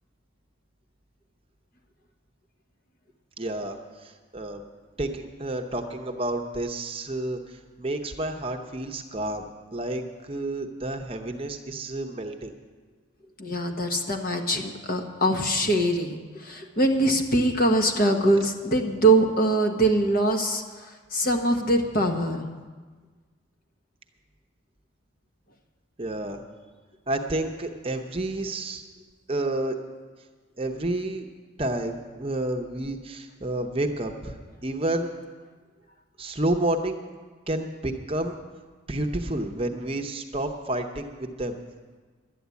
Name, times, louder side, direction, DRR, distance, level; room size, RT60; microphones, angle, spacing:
voice 1, 3.4-4.6 5.0-12.5 26.0-26.4 27.1-28.8 29.3-29.8 30.6-31.3 31.6-35.1 36.2-37.0 37.5-38.4 38.9-41.6, right 1 dB, 25° right, 4 dB, 0.8 m, -30 dB
voice 2, 13.4-22.5, right 1 dB, 45° left, 4 dB, 1.2 m, -23 dB
12.0 x 9.3 x 8.3 m, 1.4 s
head